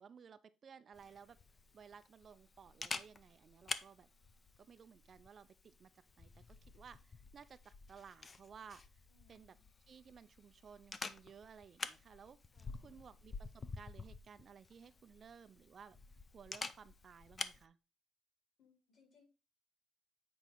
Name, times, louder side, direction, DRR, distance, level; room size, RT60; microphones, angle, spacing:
voice 1, 0.0-1.4 1.7-4.1 4.6-5.9 6.2-6.4 6.7-8.8 9.3-9.6 9.9-12.4 12.8-16.0 16.3-17.8, right 7 dB, 40° right, 0.4 m, -57 dB
Camera, 0.9-17.6, left 4 dB, 25° left, 0.5 m, -49 dB
voice 2, 9.1-9.7 12.5-13.0 18.6-19.2, left 4 dB, 45° left, 3.7 m, -71 dB
8.2 x 4.6 x 3.9 m
cardioid pair, 135°, 0 cm